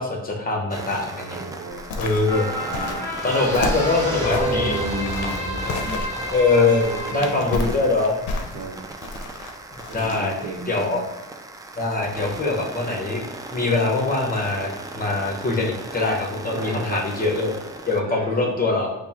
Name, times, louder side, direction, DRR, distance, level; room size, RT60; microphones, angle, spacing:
voice 1, 0.0-1.4 2.0-2.5 3.2-4.8 5.6-5.8 6.3-6.8 7.1-8.2 9.9-10.3 10.7-11.0 11.8-13.2 13.5-17.6 17.9-18.9, left 3 dB, 30° left, 0 dB, 0.8 m, -22 dB
sound 1, 0.7-18.0, right 2 dB, 10° right, 0.3 m, -38 dB
voice 2, 1.3-1.9 2.6-3.1 3.5-3.7 4.4-6.1 6.6-7.4 8.5-8.8 9.9-11.0 16.5-17.0 18.0-18.6, right 2 dB, 60° right, 1 dB, 0.8 m, -34 dB
sound 2, 1.7-10.5 10.9-11.0, left 3 dB, 70° left, 0.6 m, -32 dB
sound 3, 2.2-8.9 9.3-9.4, equal, 10° left, 1.1 m, -30 dB
5.1 x 2.0 x 2.9 m, 0.93 s
cardioid pair, 90°, 30 cm